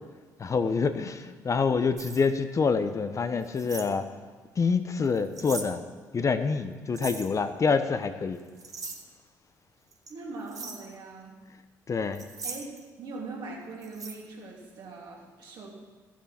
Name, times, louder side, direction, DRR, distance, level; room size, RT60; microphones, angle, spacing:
voice 1, 0.4-4.1 4.6-5.8 6.1-8.4 11.9-12.3, left 5 dB, 35° left, 9 dB, 0.9 m, -26 dB
sound 1, 2.0-2.3 3.4-3.9 5.1-5.7 6.9-7.3 8.4-9.0 9.9-10.1 10.5-10.9 12.1-12.8 13.8-14.2, right 4 dB, 40° right, 1.7 m, -39 dB
voice 2, 10.1-11.4 12.4-12.7 13.0-15.7, right 3 dB, 60° right, -2 dB, 3.3 m, -41 dB
14.0 x 7.3 x 6.0 m, 1.4 s
hypercardioid pair, 55°, 9 cm